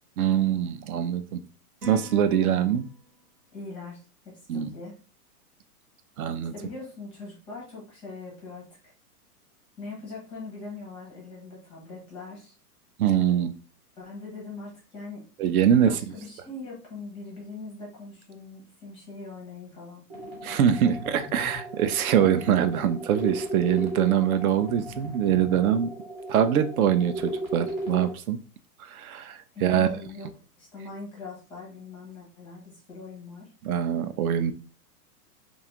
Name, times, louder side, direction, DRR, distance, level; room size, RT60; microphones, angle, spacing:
voice 1, 0.2-1.4 1.9-2.9 4.5-4.7 6.2-6.5 13.0-13.5 15.4-16.0 20.4-25.9 26.3-28.4 28.9-29.9 33.6-34.5, right 9 dB, 65° right, 0.5 m, -23 dB
sound 1, 1.8-3.3, equal, 80° right, 1.3 m, -44 dB
voice 2, 3.5-5.0 6.5-8.9 9.8-12.5 14.0-15.2 15.7-20.0 29.5-30.3 30.6-33.5, left 3 dB, 15° left, 0.5 m, -41 dB
sound 2, 20.1-28.1, right 1 dB, 15° right, 0.9 m, -36 dB
2.5 x 2.3 x 2.8 m
hypercardioid pair, 140°, 47 cm